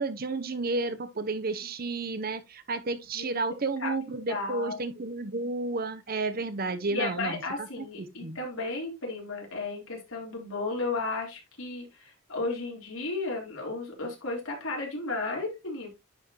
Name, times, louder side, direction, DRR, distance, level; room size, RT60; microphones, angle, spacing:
voice 1, 0.0-8.4, right 3 dB, 45° right, 0.9 m, -32 dB
voice 2, 4.3-4.8 6.9-15.9, left 3 dB, 80° left, 4.0 m, -34 dB
10.5 x 5.1 x 3.1 m
head